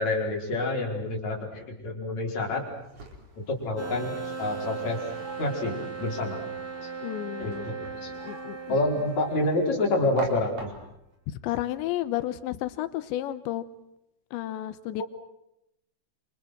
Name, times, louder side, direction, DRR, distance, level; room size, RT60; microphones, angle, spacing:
voice 1, 0.0-2.6 3.4-5.0 5.4-6.4 6.8-6.9 7.4-8.1 8.7-10.7 15.0-15.1, left 2 dB, 35° left, 0 dB, 5.9 m, -28 dB
sound 1, 2.6-11.2, right 2 dB, 40° right, 5.3 m, -45 dB
sound 2, 3.8-10.2, right 5 dB, 60° right, 0.9 m, -37 dB
voice 2, 7.0-7.7 8.1-8.8 11.3-13.6 14.3-15.0, left 13 dB, 75° left, 13 dB, 3.3 m, -32 dB
29.0 x 28.0 x 6.3 m, 0.81 s
omnidirectional pair, 5.6 m